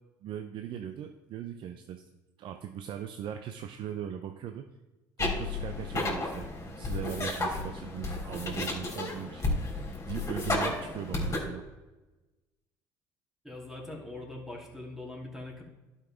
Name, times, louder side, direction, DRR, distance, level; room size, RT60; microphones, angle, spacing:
voice 1, 0.2-2.0 2.4-4.7 5.2-9.6 10.1-11.7, right 9 dB, 60° right, 7 dB, 0.6 m, -39 dB
sound 1, 5.2-11.4, left 2 dB, 30° left, 3.1 m, -33 dB
voice 2, 13.4-15.6, left 2 dB, 5° right, -1 dB, 2.8 m, -42 dB
11.5 x 5.5 x 3.6 m, 1.1 s
hypercardioid pair, 70°, 10 cm